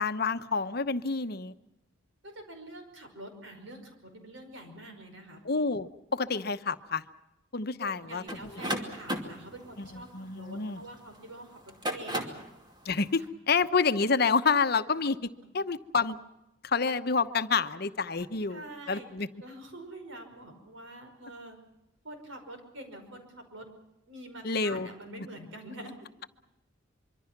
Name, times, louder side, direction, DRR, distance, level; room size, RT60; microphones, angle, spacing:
voice 1, 0.0-1.5 5.4-7.0 7.5-8.6 9.8-10.8 12.8-15.2 15.5-16.2 16.6-19.3 24.4-24.9, left 4 dB, 55° left, 11 dB, 0.9 m, -28 dB
voice 2, 2.2-5.4 7.8-10.1 10.3-12.4 18.5-19.1 19.4-21.6 22.0-23.7 24.1-26.1, right 1 dB, 80° right, 5 dB, 5.2 m, -46 dB
sound 1, 8.3-11.0 11.6-12.5, equal, 20° right, 2.6 m, -35 dB
25.5 x 24.0 x 6.0 m, 0.92 s
head